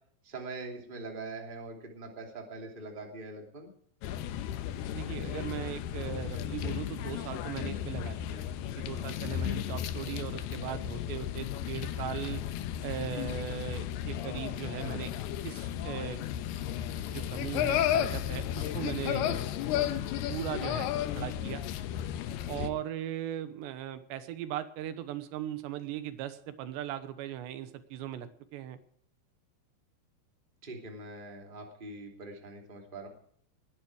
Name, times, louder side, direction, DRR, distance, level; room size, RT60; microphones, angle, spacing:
voice 1, 0.2-3.7 22.5-22.7 30.6-33.1, right 3 dB, 15° right, 2 dB, 2.2 m, -43 dB
sound 1, 4.0-22.7, left 11 dB, 80° left, 2.8 m, -34 dB
voice 2, 4.9-8.5 8.8-12.4 12.8-15.1 15.4-16.2 17.1-19.4 20.3-20.9 21.2-21.6 22.5-28.8, right 11 dB, 85° right, 12 dB, 3.4 m, -38 dB
20.5 x 10.5 x 4.8 m, 0.62 s
omnidirectional pair, 4.9 m